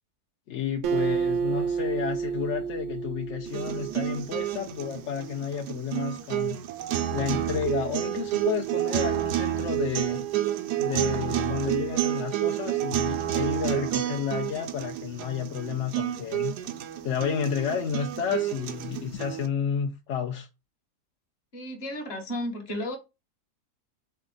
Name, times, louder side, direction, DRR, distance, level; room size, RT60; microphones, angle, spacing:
voice 1, 0.5-6.6 7.1-10.3 10.8-16.5 17.0-20.5, left 7 dB, 65° left, 0.7 m, -31 dB
Acoustic guitar, 0.8-4.3, right 6 dB, 70° right, 1.0 m, -29 dB
sound 1, 3.5-19.5, right 12 dB, 90° right, 1.2 m, -29 dB
voice 2, 21.5-23.0, left 1 dB, 45° left, 1.2 m, -33 dB
3.9 x 3.3 x 3.7 m
omnidirectional pair, 1.7 m